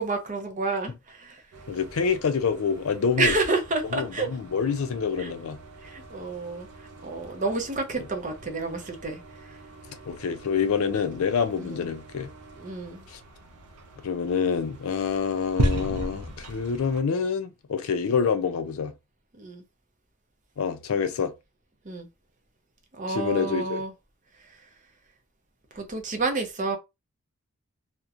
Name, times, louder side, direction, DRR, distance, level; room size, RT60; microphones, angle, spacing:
voice 1, 0.0-1.4 3.2-4.3 5.2-5.3 5.8-6.7 7.0-9.2 9.5-9.6 11.6-11.8 12.6-13.0 19.4-19.6 21.8-22.1 22.9-23.9 25.7-26.8, right 3 dB, 35° right, 0.5 m, -29 dB
sound 1, 1.5-17.0, right 1 dB, 90° right, 0.5 m, -37 dB
voice 2, 1.7-3.3 3.9-5.6 9.9-12.3 13.1-13.2 14.0-18.9 20.6-21.3 23.1-23.8, left 6 dB, 70° left, 0.4 m, -27 dB
2.8 x 2.1 x 2.4 m
head